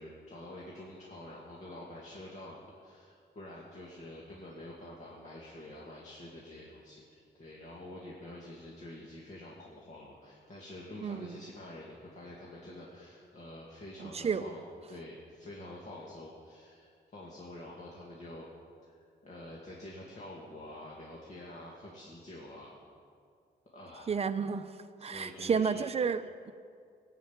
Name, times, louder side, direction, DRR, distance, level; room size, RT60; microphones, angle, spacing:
voice 1, 0.0-14.6 14.9-18.5 18.9-19.0 19.2-22.7 23.7-24.2 25.0-25.8, left 1 dB, 40° left, -4 dB, 2.2 m, -47 dB
voice 2, 11.0-11.4 14.0-14.5 24.1-24.7 25.0-26.5, right 6 dB, 35° right, 10 dB, 0.7 m, -31 dB
20.0 x 7.7 x 9.1 m, 2.2 s
wide cardioid pair, 165°, 18 cm